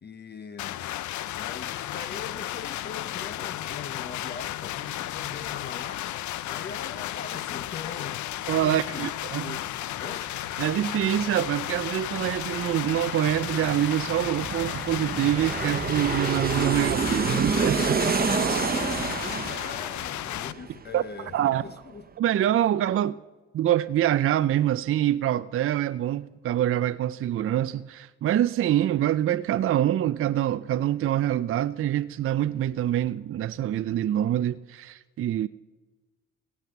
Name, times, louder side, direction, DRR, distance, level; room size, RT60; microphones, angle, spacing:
voice 1, 0.0-0.8 1.4-9.1 9.4-10.4 18.6-22.1, left 5 dB, 35° left, 0.7 m, -41 dB
sound 1, 0.6-20.5, left 14 dB, 70° left, 0.6 m, -34 dB
voice 2, 8.5-9.6 10.6-18.0 20.9-21.0 21.3-21.6 22.2-23.2 23.5-35.5, right 12 dB, 45° right, 0.4 m, -25 dB
Aircraft, 9.7-9.8 10.0-21.3 21.6-21.7, right 5 dB, 30° right, 1.0 m, -29 dB
17.0 x 7.7 x 6.8 m
cardioid pair, 85°, 30 cm